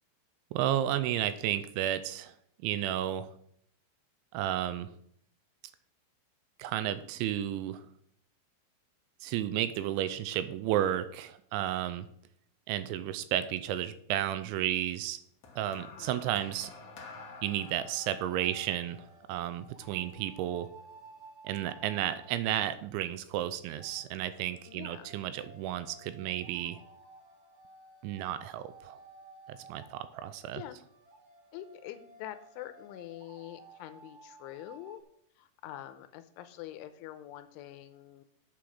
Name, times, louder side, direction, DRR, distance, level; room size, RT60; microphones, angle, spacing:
voice 1, 0.5-2.3 2.6-3.3 4.3-4.9 6.6-7.8 9.2-12.1 12.7-15.2 15.6-16.7 17.4-20.7 21.4-26.8 28.0-29.0 29.5-30.6, right 11 dB, 80° right, 12 dB, 2.8 m, -32 dB
sound 1, 15.4-19.9 20.8-21.0, left 4 dB, 65° left, 1.5 m, -50 dB
voice 2, 15.8-16.3 24.7-25.1 30.4-30.8 31.5-35.0 35.4-38.3, left 13 dB, 85° left, 11 dB, 3.1 m, -45 dB
sound 2, 16.8-35.0, right 2 dB, 55° right, 2.6 m, -55 dB
8.4 x 7.7 x 6.3 m, 0.68 s
omnidirectional pair, 5.5 m